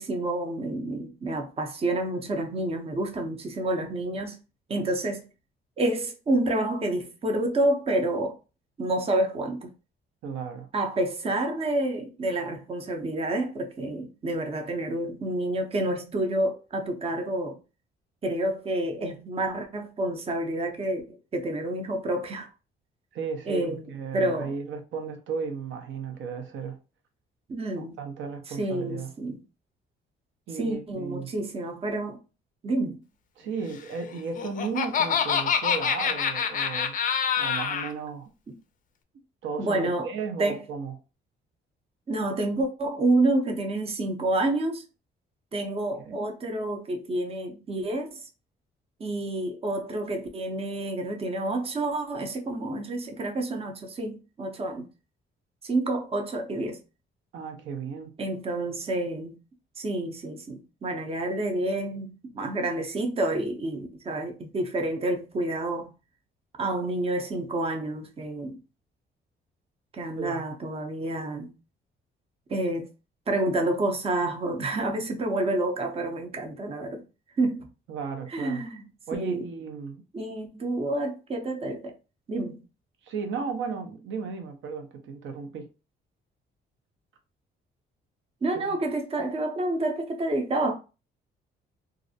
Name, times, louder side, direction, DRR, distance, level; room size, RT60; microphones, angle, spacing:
voice 1, 0.0-4.4 4.7-5.3 5.8-8.4 8.8-9.7 10.7-17.6 18.2-22.5 23.5-24.5 27.5-28.0 28.5-29.4 30.6-32.2 32.6-33.0 38.5-38.6 39.6-40.1 40.4-40.6 42.1-44.8 45.5-48.3 49.0-54.9 55.6-56.8 58.2-59.4 59.8-65.9 66.6-68.6 69.9-71.5 72.5-72.9 73.3-77.0 77.4-77.7 78.3-78.8 79.1-79.5 80.1-81.9 82.3-82.6 88.4-90.7, right 2 dB, 30° right, 0.6 m, -29 dB
voice 2, 10.2-10.7 23.1-26.8 27.8-29.1 30.5-31.3 32.8-32.9 33.4-37.0 37.4-38.3 39.4-40.9 46.0-46.3 57.3-58.1 70.2-70.4 77.9-78.6 79.1-80.0 83.0-85.7 88.5-88.7, right 5 dB, 75° right, 0.6 m, -35 dB
Laughter, 34.1-37.9, left 7 dB, 45° left, 0.4 m, -26 dB
2.4 x 2.0 x 2.6 m
cardioid pair, 90°, 20 cm